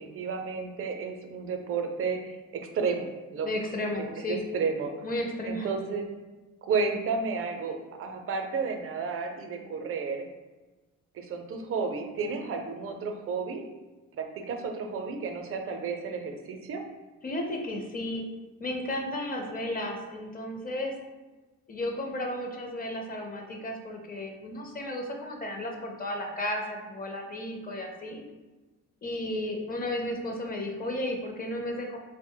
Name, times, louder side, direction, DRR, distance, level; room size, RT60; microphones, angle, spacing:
voice 1, 0.0-3.5 4.0-5.1 5.5-6.1 6.6-10.3 11.1-13.7 14.1-16.8, right 5 dB, 50° right, 5 dB, 0.5 m, -32 dB
voice 2, 3.4-4.4 5.0-5.7 17.2-18.2 18.6-20.9 21.7-28.2 29.0-32.0, left 1 dB, 30° left, 2 dB, 0.5 m, -33 dB
2.5 x 2.0 x 3.7 m, 1.2 s
cardioid pair, 90°, 30 cm